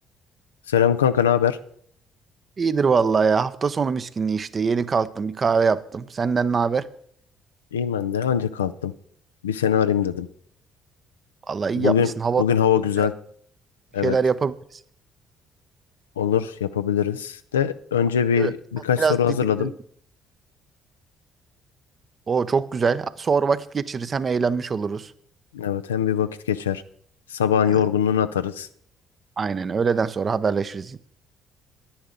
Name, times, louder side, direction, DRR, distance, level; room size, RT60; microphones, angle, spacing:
voice 1, 0.7-1.6 7.7-8.9 9.4-10.3 11.8-12.1 12.4-13.1 13.9-14.2 16.2-19.7 25.5-26.8 27.3-28.7, left 8 dB, 85° left, 11 dB, 0.4 m, -22 dB
voice 2, 2.6-6.9 11.5-12.4 13.0-13.1 14.0-14.8 18.4-18.5 19.0-19.7 22.3-25.1 27.7-27.8 29.4-31.0, right 5 dB, 40° right, 14 dB, 0.7 m, -23 dB
10.5 x 9.8 x 5.1 m, 0.64 s
hypercardioid pair, 50°, 0 cm